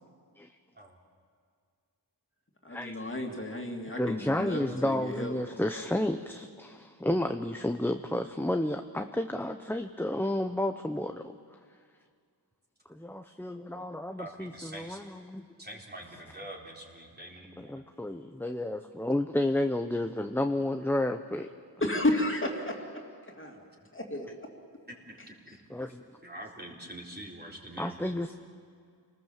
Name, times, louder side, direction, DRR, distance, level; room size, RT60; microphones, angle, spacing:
voice 1, 2.6-5.8 21.8-22.8 23.4-24.3, left 1 dB, 30° left, 1 dB, 2.9 m, -32 dB
voice 2, 4.0-11.4 12.9-15.5 17.6-21.5 25.7-26.0 27.8-28.3, left 1 dB, 5° left, 6 dB, 0.8 m, -31 dB
voice 3, 14.2-15.0 15.6-17.8 24.9-25.7 26.2-28.0, right 1 dB, 25° right, -1 dB, 4.1 m, -45 dB
29.0 x 19.5 x 7.4 m, 2.1 s
wide cardioid pair, 105°, 41 cm